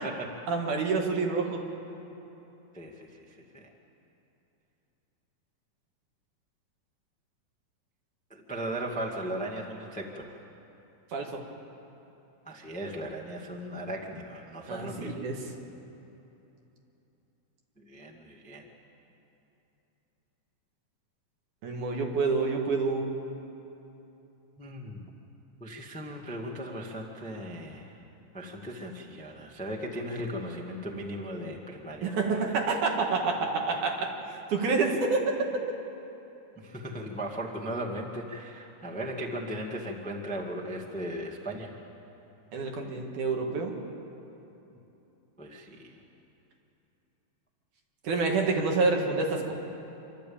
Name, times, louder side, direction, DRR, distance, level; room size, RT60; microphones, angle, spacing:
voice 1, 0.5-1.6 11.1-11.4 14.7-15.4 21.6-23.1 32.0-35.6 42.5-43.8 48.0-49.5, right 4 dB, 70° right, 1 dB, 3.3 m, -28 dB
voice 2, 2.7-3.7 8.3-10.4 12.4-15.1 17.9-18.7 24.6-25.1 25.6-28.0 28.3-32.5 36.6-41.7 45.4-46.0, right 1 dB, 5° left, -1 dB, 0.7 m, -37 dB
27.0 x 12.5 x 8.6 m, 3.0 s
omnidirectional pair, 3.8 m